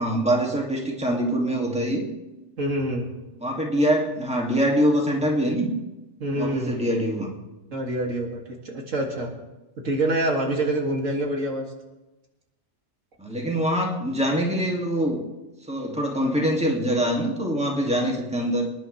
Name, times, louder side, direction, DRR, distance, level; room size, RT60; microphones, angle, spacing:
voice 1, 0.0-2.1 3.4-5.7 6.3-7.3 13.2-15.2 15.7-18.7, equal, 5° right, 0 dB, 2.2 m, -24 dB
voice 2, 2.6-3.1 6.2-6.8 7.7-9.3 9.8-11.7, right 1 dB, 85° right, 0 dB, 2.6 m, -26 dB
25.5 x 10.5 x 3.3 m, 1.0 s
omnidirectional pair, 1.3 m